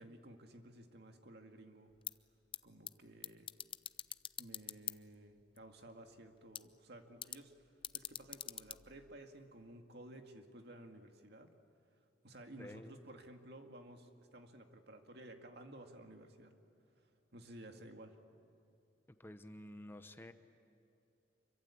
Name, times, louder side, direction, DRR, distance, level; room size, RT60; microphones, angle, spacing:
voice 1, 0.0-1.9 2.6-3.5 4.4-7.5 7.9-11.5 12.2-16.5 17.3-18.2, right 1 dB, 65° right, 4 dB, 2.2 m, -55 dB
sound 1, 1.9-9.7, left 10 dB, 30° left, 0.5 m, -49 dB
voice 2, 12.6-12.9 19.2-20.3, left 1 dB, 15° left, 9 dB, 0.9 m, -51 dB
26.0 x 24.0 x 8.6 m, 2.8 s
head